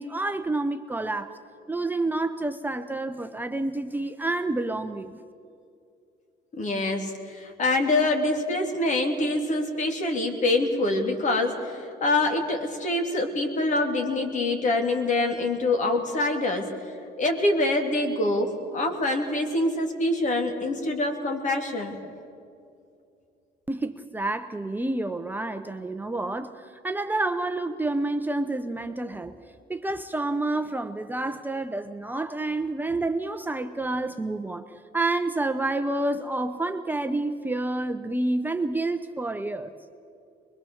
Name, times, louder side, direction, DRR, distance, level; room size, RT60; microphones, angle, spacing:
voice 1, 0.0-1.4 1.7-5.2 23.7-29.4 29.7-34.7 34.9-39.7, right 2 dB, 10° right, 7 dB, 0.8 m, -29 dB
voice 2, 6.5-16.7 17.2-22.0, left 2 dB, 45° left, 4 dB, 3.1 m, -25 dB
22.5 x 22.0 x 7.2 m, 2.5 s
cardioid pair, 110°, 17 cm